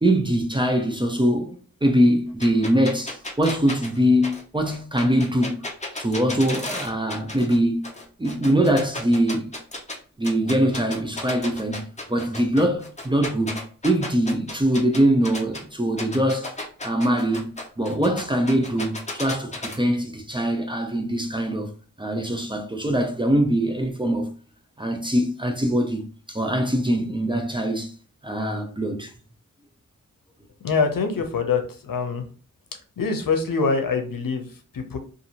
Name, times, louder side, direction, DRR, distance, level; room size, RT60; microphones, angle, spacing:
voice 1, 0.0-5.6 6.0-9.5 10.2-16.5 16.8-21.7 22.0-24.3 24.8-27.9 28.2-29.1, right 1 dB, 15° right, 0.4 m, -23 dB
sound 1, 2.4-7.6 7.8-10.0 10.2-15.6 16.0-19.8, left 2 dB, 20° left, 0.7 m, -34 dB
voice 2, 30.6-32.3 33.0-35.0, left 4 dB, 75° left, 0.7 m, -24 dB
2.6 x 2.5 x 2.8 m
wide cardioid pair, 80°, 34 cm